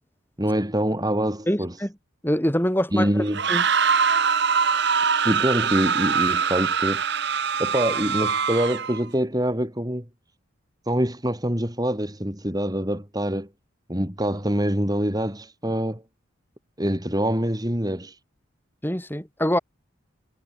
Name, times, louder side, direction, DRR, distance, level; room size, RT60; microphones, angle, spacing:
voice 1, 0.4-1.7 2.9-3.4 5.2-7.0 7.6-10.1 10.9-13.5 13.9-16.0 16.8-18.1, equal, 20° right, 3.9 m, -25 dB
voice 2, 1.5-1.9 2.2-3.1 3.5-3.7 18.8-19.6, equal, 10° left, 4.9 m, -24 dB
sound 1, 3.3-9.0, right 6 dB, 55° right, 1.5 m, -23 dB
head